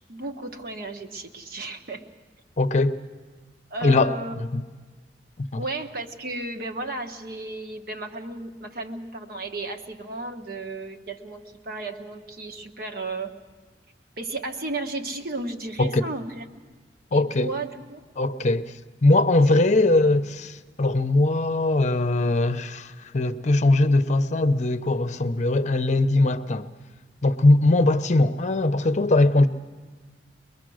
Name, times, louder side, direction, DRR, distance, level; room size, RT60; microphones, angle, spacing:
voice 1, 0.1-2.0 3.7-4.3 5.6-13.4 14.2-16.4 17.1-18.0 19.4-19.5, right 2 dB, 60° right, 1.4 m, -34 dB
voice 2, 2.6-3.0 3.8-4.6 5.4-5.6 15.8-16.0 17.1-17.5 18.2-18.7 19.0-26.7 27.2-29.5, left 2 dB, 40° left, 0.7 m, -21 dB
23.0 x 21.5 x 6.3 m
head